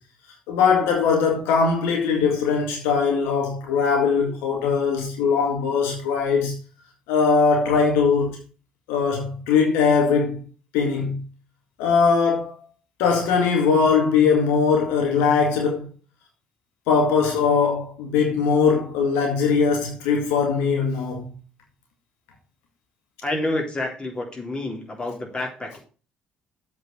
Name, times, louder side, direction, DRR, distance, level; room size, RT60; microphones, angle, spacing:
voice 1, 0.5-6.5 7.1-8.4 8.9-10.4 10.7-11.2 11.8-12.6 13.0-15.9 16.9-21.3, left 5 dB, 75° left, 2.1 m, -20 dB
voice 2, 23.2-25.8, left 2 dB, 25° left, 3.3 m, -28 dB
7.8 x 4.7 x 6.4 m
hypercardioid pair, 55°, 4 cm